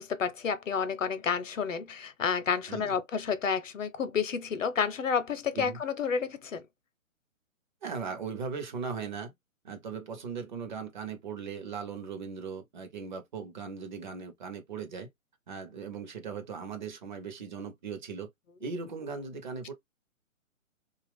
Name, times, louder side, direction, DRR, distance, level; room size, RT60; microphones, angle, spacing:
voice 1, 0.0-6.6, left 6 dB, 65° left, 0.7 m, -30 dB
voice 2, 7.8-9.3 9.6-15.1 15.5-18.3 18.6-19.7, right 5 dB, 35° right, 0.7 m, -38 dB
2.8 x 2.4 x 3.3 m
figure-of-eight pair, 130°, 41 cm